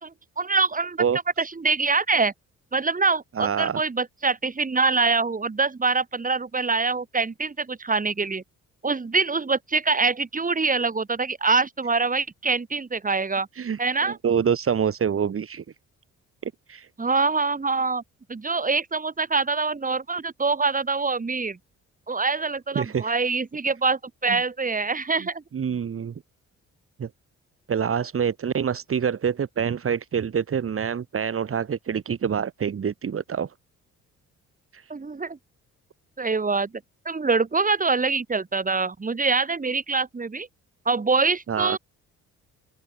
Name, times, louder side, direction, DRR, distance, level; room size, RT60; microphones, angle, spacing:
voice 1, 0.0-1.0 1.4-2.3 2.7-8.4 8.8-13.5 13.8-14.2 17.0-18.0 18.3-21.6 22.1-25.4 34.9-35.4 36.2-36.7 37.1-40.5 40.9-41.8, right 4 dB, 25° right, 5.8 m, -24 dB
voice 2, 3.4-3.8 13.5-15.6 16.4-16.9 22.7-23.1 25.5-26.1 27.0-27.1 27.7-33.5 34.7-34.8 41.5-41.8, right 7 dB, 45° right, 3.2 m, -26 dB
open air
cardioid pair, 90°, 30 cm